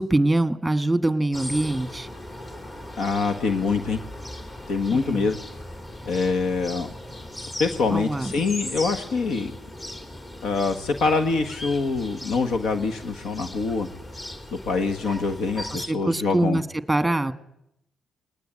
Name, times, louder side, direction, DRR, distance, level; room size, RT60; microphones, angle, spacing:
voice 1, 0.0-2.1 4.9-5.3 7.9-8.3 15.7-16.6 16.9-17.3, right 2 dB, 5° right, 10 dB, 1.5 m, -23 dB
sound 1, 1.3-15.9, left 1 dB, 30° left, 3.5 m, -38 dB
voice 2, 3.0-4.0 4.7-5.4 6.0-6.9 7.6-9.5 10.4-13.9 14.5-16.6, left 4 dB, 75° left, 6 dB, 1.5 m, -25 dB
20.5 x 18.5 x 8.8 m, 0.81 s
cardioid pair, 90°, 0 cm